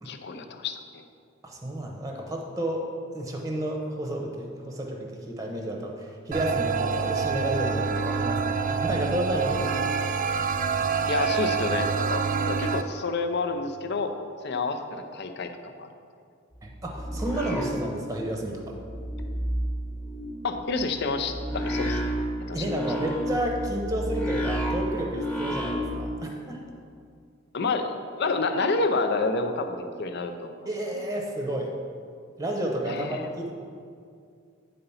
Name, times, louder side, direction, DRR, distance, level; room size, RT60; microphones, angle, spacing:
voice 1, 0.1-1.0 11.1-14.1 14.4-15.9 20.4-22.2 22.5-22.6 27.5-30.7 32.8-33.3, left 3 dB, 55° left, 6 dB, 0.6 m, -29 dB
voice 2, 1.4-2.9 3.1-10.0 10.8-10.9 16.6-18.8 22.5-26.6 30.6-31.7 32.4-33.5, right 1 dB, 15° right, 1 dB, 0.8 m, -31 dB
sound 1, 6.3-12.8, right 5 dB, 40° right, 0.3 m, -26 dB
sound 2, 16.5-18.4 18.7-26.1, equal, 5° left, 0.9 m, -31 dB
9.3 x 3.9 x 5.6 m, 2.3 s
head